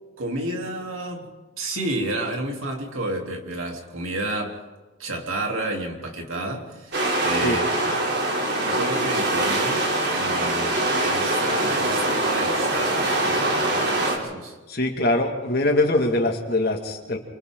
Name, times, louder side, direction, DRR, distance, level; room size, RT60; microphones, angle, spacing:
voice 1, 0.2-1.3 1.6-4.6 5.0-8.0 8.6-9.8 10.1-14.6, right 1 dB, 80° right, 1 dB, 3.5 m, -31 dB
sound 1, 6.9-14.2, right 1 dB, 55° right, 3.5 m, -23 dB
voice 2, 14.7-17.2, left 2 dB, 50° left, 3 dB, 2.2 m, -22 dB
28.5 x 25.0 x 3.9 m, 1.2 s
head